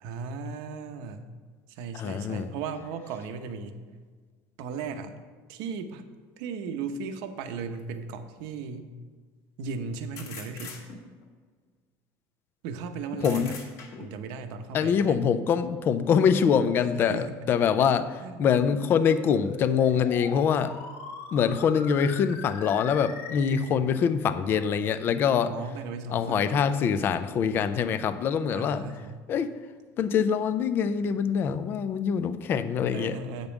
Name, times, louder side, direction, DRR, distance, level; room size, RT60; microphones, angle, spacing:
voice 1, 0.0-1.3 1.7-3.8 4.6-5.1 5.5-6.0 6.4-8.9 9.6-10.8 12.6-13.6 14.0-15.2 16.9-17.3 17.8-17.9 18.2-18.5 25.5-26.6 28.5-29.2 32.9-33.5, right 5 dB, 60° right, 8 dB, 0.8 m, -36 dB
voice 2, 2.0-2.5 13.2-13.5 14.0-14.1 14.7-18.1 18.4-20.7 21.3-25.5 26.1-28.8 29.3-29.5 30.0-33.2, left 7 dB, 30° left, 12 dB, 0.4 m, -24 dB
sound 1, 7.8-7.9 10.2-11.3 13.2-14.2, left 5 dB, 45° left, 1.3 m, -42 dB
sound 2, 18.6-23.6, left 5 dB, 80° left, 1.4 m, -41 dB
8.1 x 5.2 x 7.1 m, 1.5 s
cardioid pair, 175°, 8 cm